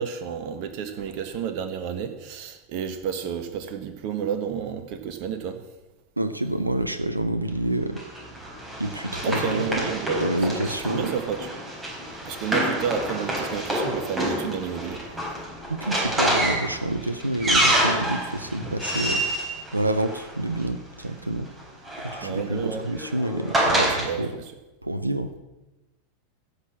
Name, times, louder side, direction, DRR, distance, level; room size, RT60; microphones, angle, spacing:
voice 1, 0.0-5.6 9.2-11.5 12.2-15.0 22.2-22.8 23.7-24.4, right 7 dB, 50° right, 8 dB, 1.4 m, -31 dB
voice 2, 6.2-8.0 8.8-9.9 10.2-11.1 15.7-21.5 22.0-24.3 24.8-25.3, right 1 dB, 90° right, 11 dB, 0.7 m, -28 dB
Run, 8.0-20.6 21.6-24.1, right 1 dB, 15° right, 4.5 m, -27 dB
15.5 x 6.3 x 7.4 m, 1.0 s
figure-of-eight pair, 85°, 0 cm